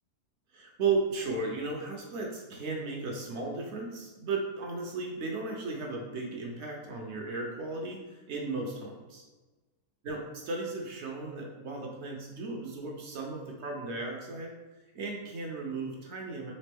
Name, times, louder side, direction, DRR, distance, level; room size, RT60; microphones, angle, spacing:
voice 1, 0.5-9.2 10.0-14.5 14.9-16.5, right 3 dB, 55° right, 0 dB, 0.9 m, -35 dB
4.2 x 3.6 x 3.4 m, 1.2 s
omnidirectional pair, 1.6 m